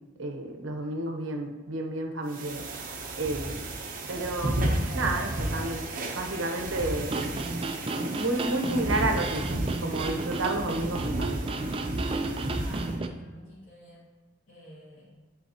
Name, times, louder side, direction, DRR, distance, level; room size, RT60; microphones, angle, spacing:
voice 1, 0.2-2.7 3.2-3.7 4.1-4.6 4.9-5.8 6.1-7.4 8.0-11.5, right 2 dB, 80° right, 3 dB, 0.8 m, -31 dB
sound 1, 2.3-13.0, right 1 dB, 45° right, 0.9 m, -33 dB
sound 2, 7.0-13.1, right 2 dB, 30° right, 0.4 m, -32 dB
voice 2, 12.5-14.0 14.5-15.2, equal, 70° left, -10 dB, 2.1 m, -50 dB
10.5 x 4.0 x 2.9 m, 1.2 s
head